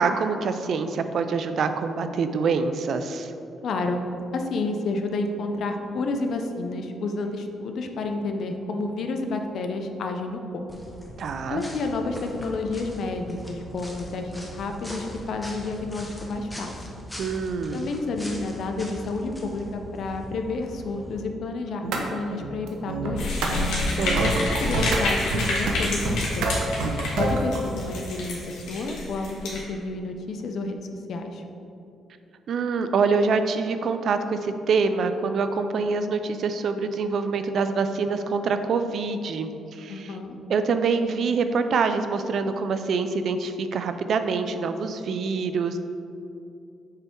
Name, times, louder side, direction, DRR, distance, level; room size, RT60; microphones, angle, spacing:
voice 1, 0.0-3.3 11.2-11.6 17.2-17.9 24.0-24.4 32.5-40.2 40.5-45.8, right 4 dB, 60° right, 9 dB, 0.4 m, -25 dB
voice 2, 3.6-4.0 4.3-10.6 11.5-16.7 17.7-23.3 24.6-26.6 27.2-30.8 31.1-31.4 39.9-40.3, left 3 dB, 65° left, 5 dB, 0.6 m, -30 dB
sound 1, 10.7-21.2, equal, 10° left, 0.9 m, -40 dB
sound 2, 21.8-22.0 22.3-25.0 25.3-25.7 26.1-27.6, right 2 dB, 85° right, 0.7 m, -26 dB
sound 3, 23.2-29.6, left 2 dB, 85° left, 1.5 m, -29 dB
6.8 x 3.4 x 4.4 m, 2.7 s
cardioid pair, 90°, 0 cm